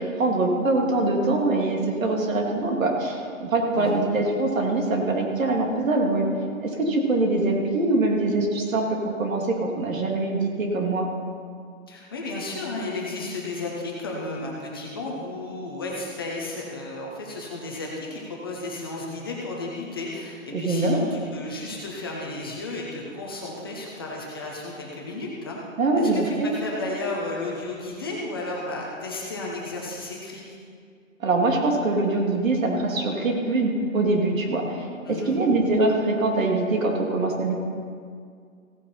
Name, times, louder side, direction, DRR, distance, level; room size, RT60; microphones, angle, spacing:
voice 1, 0.0-6.3 6.6-11.1 20.5-21.0 25.8-26.5 31.2-37.5, right 2 dB, 70° right, 1 dB, 2.6 m, -23 dB
voice 2, 11.9-25.6 26.0-30.6 35.1-35.3, left 2 dB, 15° left, -3 dB, 0.8 m, -33 dB
16.0 x 9.5 x 4.3 m, 2.2 s
hypercardioid pair, 175°, 41 cm